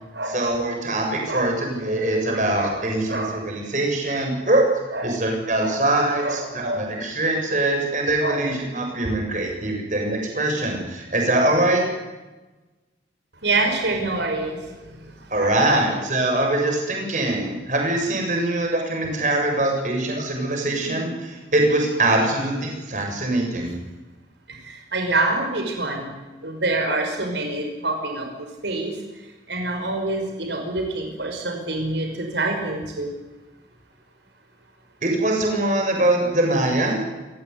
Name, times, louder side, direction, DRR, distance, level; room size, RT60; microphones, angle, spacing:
voice 1, 0.3-4.7 5.0-11.8 15.3-23.7 35.0-37.0, right 2 dB, 45° right, 2 dB, 7.6 m, -23 dB
voice 2, 2.2-2.8 3.1-3.3 4.9-5.1 5.6-5.8 6.2-6.9 8.2-8.4 13.4-15.0 15.2-15.8 24.5-26.1 26.4-28.9 29.5-33.1, right 2 dB, 85° right, 3 dB, 5.8 m, -26 dB
28.5 x 17.5 x 9.7 m, 1.1 s
head